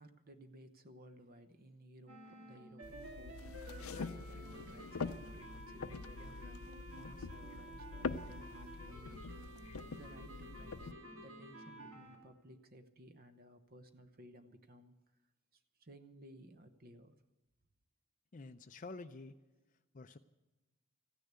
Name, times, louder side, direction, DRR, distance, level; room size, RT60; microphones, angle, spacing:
voice 1, 0.0-9.2 9.9-14.9 15.5-17.1, right 1 dB, 45° right, 8 dB, 1.0 m, -58 dB
sound 1, 2.1-12.2, right 1 dB, 75° right, 3.2 m, -52 dB
sound 2, 2.8-10.9, left 4 dB, 85° left, 0.6 m, -45 dB
voice 2, 18.3-19.4 19.9-20.2, left 3 dB, 40° left, 8 dB, 0.5 m, -49 dB
15.0 x 10.0 x 8.2 m, 1.1 s
head